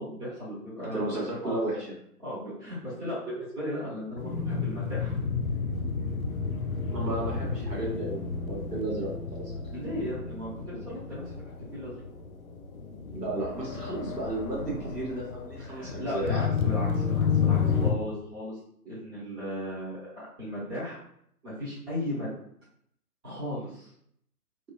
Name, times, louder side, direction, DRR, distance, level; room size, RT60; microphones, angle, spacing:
voice 1, 0.0-1.1 1.4-1.6 2.2-5.2 9.7-11.2 11.7-12.0 15.6-18.6 18.8-21.0 21.4-22.3 23.2-23.9, left 1 dB, 15° right, -10 dB, 1.0 m, -36 dB
voice 2, 0.8-1.8 6.9-9.6 13.1-16.5, right 2 dB, 85° right, -5 dB, 1.3 m, -33 dB
sound 1, 4.2-17.9, left 6 dB, 60° left, 0.5 m, -31 dB
2.6 x 2.6 x 2.2 m, 0.70 s
figure-of-eight pair, 130°, 47 cm